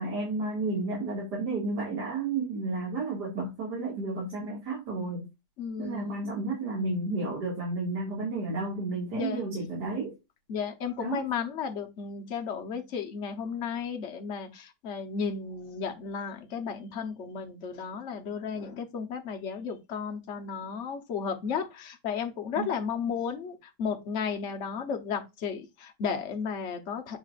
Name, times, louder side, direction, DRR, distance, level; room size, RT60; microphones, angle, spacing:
voice 1, 0.0-5.2 5.8-10.1 11.0-11.2 22.6-22.7, right 3 dB, 75° right, 2.7 m, -32 dB
voice 2, 5.6-6.2 9.1-9.4 10.5-27.2, left 6 dB, 50° left, 1.2 m, -34 dB
8.6 x 4.6 x 2.5 m
omnidirectional pair, 1.8 m